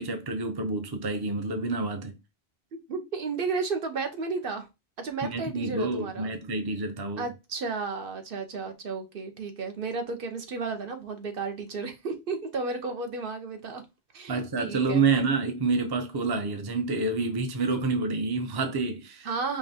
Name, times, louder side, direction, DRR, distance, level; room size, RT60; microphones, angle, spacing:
voice 1, 0.0-2.1 5.2-7.3 14.3-19.3, right 3 dB, 30° right, 0.5 m, -28 dB
voice 2, 2.7-4.7 5.0-6.3 7.2-13.8 14.1-15.0 19.2-19.6, right 4 dB, 65° right, 0.9 m, -33 dB
5.1 x 2.5 x 2.7 m
omnidirectional pair, 1.1 m